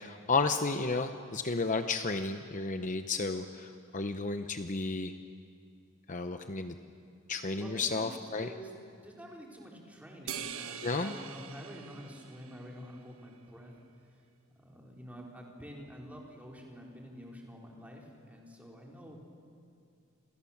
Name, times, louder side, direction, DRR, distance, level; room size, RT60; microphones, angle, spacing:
voice 1, 0.0-5.1 6.1-6.8 7.3-8.5 10.8-11.1, left 3 dB, 35° left, 8 dB, 0.9 m, -32 dB
voice 2, 7.6-8.7 9.0-13.8 14.0-14.2 14.5-19.2, equal, 5° right, -1 dB, 4.0 m, -48 dB
sound 1, 10.3-13.0, right 8 dB, 85° right, 1.3 m, -43 dB
28.5 x 28.0 x 7.3 m, 2.4 s
head